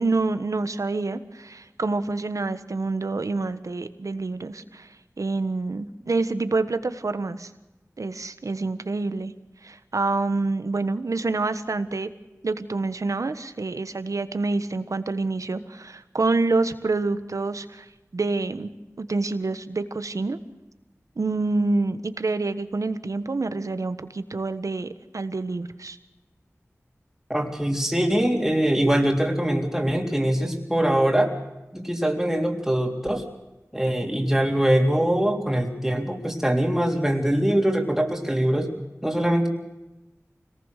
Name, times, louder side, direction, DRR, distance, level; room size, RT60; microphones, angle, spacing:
voice 1, 0.0-4.9 5.2-7.5 8.0-9.3 9.6-12.1 12.4-17.9 18.1-18.7 19.0-20.4 21.2-26.0, right 3 dB, 90° right, 11 dB, 1.3 m, -27 dB
voice 2, 27.3-31.4 31.7-33.2 33.7-38.7 39.0-39.5, right 1 dB, 5° right, 1 dB, 3.6 m, -23 dB
25.5 x 18.5 x 6.6 m, 1.0 s
wide cardioid pair, 65°, 5 cm